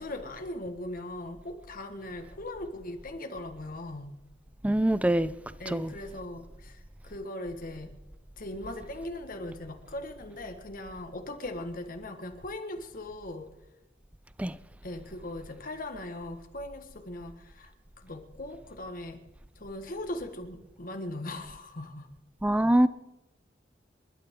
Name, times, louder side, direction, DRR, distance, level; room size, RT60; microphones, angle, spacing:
voice 1, 0.0-4.2 5.6-7.9 8.4-13.5 14.8-17.7 18.0-19.2 19.6-22.1, left 1 dB, 50° left, 1.6 m, -39 dB
voice 2, 4.6-5.3 5.7-5.9 14.4-14.6 22.4-22.9, right 1 dB, 10° right, 0.5 m, -24 dB
28.5 x 12.0 x 3.8 m
head